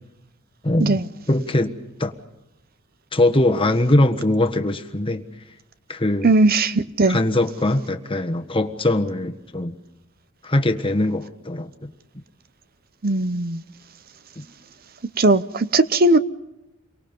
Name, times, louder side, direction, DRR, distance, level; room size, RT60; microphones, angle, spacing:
voice 1, 0.6-1.0 1.3-1.7 2.0-2.1 3.1-5.2 5.9-6.3 7.1-9.7 10.4-11.7, left 1 dB, 25° left, 1.4 m, -21 dB
voice 2, 6.2-7.2 13.0-13.6 15.2-16.2, right 2 dB, 45° right, 0.7 m, -18 dB
30.0 x 24.0 x 5.4 m
head